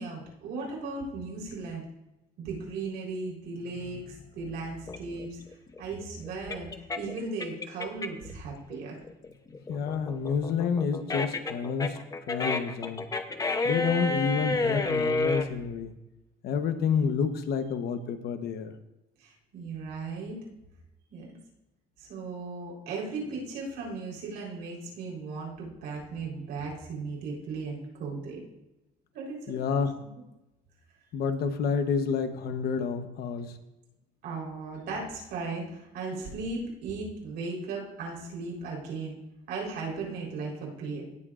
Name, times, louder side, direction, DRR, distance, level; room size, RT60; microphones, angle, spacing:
voice 1, 0.0-1.8 2.4-5.4 5.8-6.7 6.9-9.0 19.2-20.4 21.1-21.4 22.0-28.4 29.1-29.8 34.2-39.2 39.5-41.0, right 3 dB, 85° right, -2 dB, 4.1 m, -37 dB
sound 1, 4.9-8.3 8.7-15.5, left 3 dB, 20° left, 0.8 m, -30 dB
voice 2, 9.7-12.0 12.3-13.1 13.6-15.9 16.4-18.7 29.5-30.0 31.1-33.6, left 6 dB, 70° left, 9 dB, 1.1 m, -29 dB
17.5 x 8.8 x 2.5 m, 0.95 s
cardioid pair, 110°, 17 cm